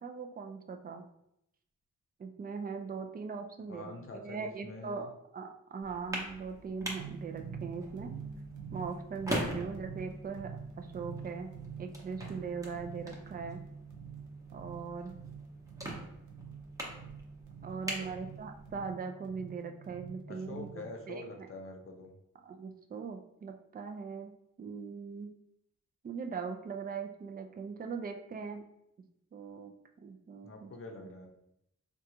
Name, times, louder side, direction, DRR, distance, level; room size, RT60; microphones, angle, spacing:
voice 1, 0.0-1.0 2.2-8.1 8.7-10.5 10.8-11.5 11.8-13.6 14.5-15.1 17.6-21.2 22.4-24.3 24.6-25.3 26.0-28.6 29.3-29.7 30.0-30.7, right 5 dB, 30° right, 5 dB, 0.4 m, -40 dB
voice 2, 3.7-5.1 17.7-18.2 20.3-22.1 30.4-31.3, left 2 dB, 45° left, 2 dB, 0.6 m, -46 dB
sound 1, 5.8-18.9, right 1 dB, 10° right, 0.7 m, -43 dB
sound 2, 7.0-20.9, right 6 dB, 75° right, 0.6 m, -46 dB
3.7 x 2.3 x 2.8 m, 0.79 s
wide cardioid pair, 90°, 30 cm